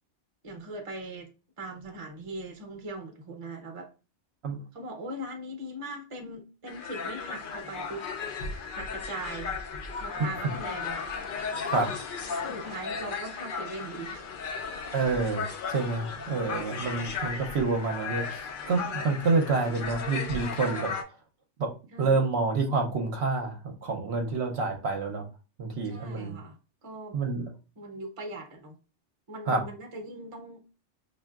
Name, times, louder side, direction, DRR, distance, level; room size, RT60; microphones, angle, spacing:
voice 1, 0.4-1.3 1.6-3.9 4.7-8.0 8.7-9.5 10.0-11.0 12.4-14.2 16.6-16.8 21.9-22.2 25.8-27.2 27.8-28.8 29.3-30.6, right 1 dB, 30° right, 2 dB, 0.8 m, -40 dB
sound 1, 6.7-21.0, left 5 dB, 55° left, 0.7 m, -35 dB
voice 2, 14.9-20.9 21.6-21.7 22.0-25.3 25.6-26.4 27.1-27.5 29.5-29.6, right 3 dB, 65° right, 2 dB, 0.9 m, -28 dB
5.3 x 2.5 x 2.3 m, 0.32 s
omnidirectional pair, 1.2 m